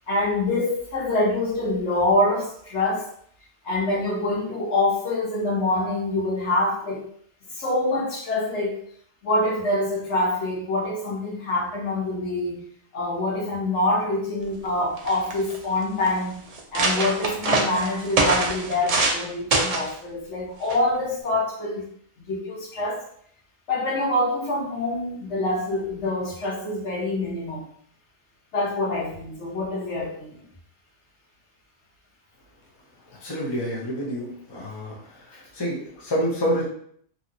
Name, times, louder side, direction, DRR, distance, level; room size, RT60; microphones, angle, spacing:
voice 1, 0.1-3.1 3.6-7.0 7.5-8.8 9.2-12.7 12.9-16.4 16.7-21.9 22.2-23.0 23.7-27.7 28.5-30.4, left 2 dB, 75° left, -4 dB, 1.2 m, -25 dB
sound 1, 14.6-14.7 15.0-15.6 16.2-16.3 16.5-19.2 19.5-19.9 20.7-21.0, right 3 dB, 65° right, 0.3 m, -24 dB
voice 2, 33.2-35.0 35.5-36.7, equal, 25° left, -4 dB, 0.6 m, -27 dB
2.8 x 2.7 x 2.6 m, 0.62 s
omnidirectional pair, 1.2 m